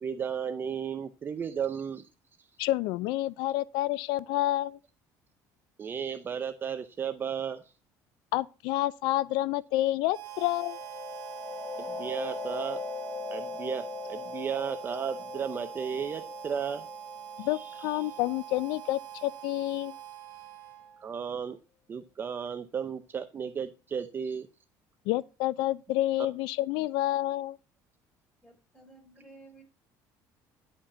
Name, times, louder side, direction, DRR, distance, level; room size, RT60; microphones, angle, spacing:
voice 1, 0.0-2.0 5.8-7.6 11.8-12.8 13.3-16.9 17.4-18.0 21.0-21.6 21.9-24.5, right 7 dB, 25° right, 0.6 m, -34 dB
voice 2, 2.6-4.8 8.3-10.8 17.4-19.9 25.1-27.6, left 16 dB, 80° left, 0.4 m, -29 dB
Harmonica, 10.1-21.1, right 11 dB, 60° right, 1.2 m, -44 dB
sound 1, 10.3-19.8, left 5 dB, 35° left, 2.1 m, -41 dB
voice 3, 28.4-29.6, right 2 dB, 10° left, 4.0 m, -54 dB
10.5 x 5.1 x 5.5 m
cardioid pair, 145°, 8 cm